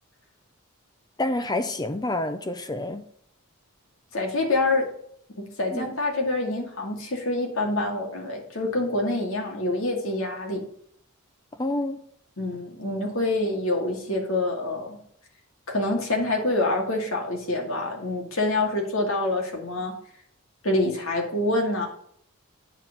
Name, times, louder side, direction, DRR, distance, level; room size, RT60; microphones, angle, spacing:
voice 1, 1.2-3.0 5.7-6.0 11.6-12.0, left 2 dB, 20° left, 0.5 m, -28 dB
voice 2, 4.1-4.9 5.4-10.6 12.4-15.0 15.7-19.9 20.6-21.9, left 2 dB, 70° left, 2.3 m, -26 dB
9.1 x 4.5 x 7.2 m
head